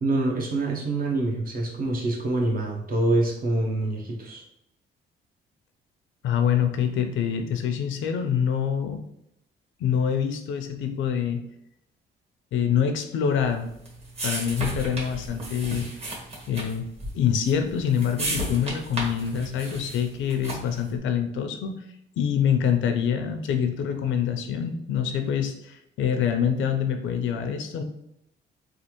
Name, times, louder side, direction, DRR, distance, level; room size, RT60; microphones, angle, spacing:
voice 1, 0.0-4.4, right 2 dB, 45° right, 0 dB, 0.9 m, -25 dB
voice 2, 6.2-9.0 9.8-11.4 12.5-13.7 14.2-15.9 16.5-16.9 17.1-21.8 22.2-27.8, left 8 dB, 80° left, 6 dB, 0.5 m, -25 dB
sound 1, 13.4-20.9, right 1 dB, 30° right, 1.2 m, -34 dB
3.2 x 2.4 x 3.0 m, 0.78 s
cardioid pair, 90°, 20 cm